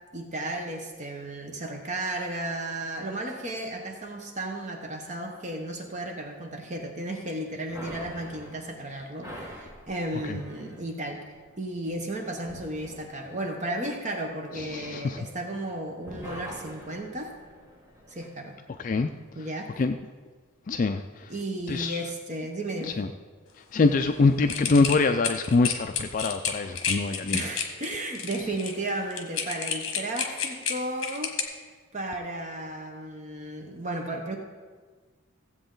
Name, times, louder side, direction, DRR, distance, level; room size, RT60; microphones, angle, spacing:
voice 1, 0.1-11.2 11.6-17.3 18.1-18.5 19.3-19.8 21.3-23.0 27.3-31.5 31.9-34.4, right 1 dB, 35° right, 2 dB, 1.0 m, -34 dB
sound 1, 7.7-15.7 16.0-18.4, equal, 15° right, 1.3 m, -45 dB
voice 2, 14.5-15.2 18.8-19.1 19.8-20.0 20.7-21.3 21.7-22.1 22.8-23.1 23.7-27.5, left 3 dB, 35° left, 7 dB, 0.3 m, -24 dB
sound 2, 24.5-31.4, left 7 dB, 60° left, 1.3 m, -30 dB
16.0 x 7.8 x 3.8 m, 1.5 s
head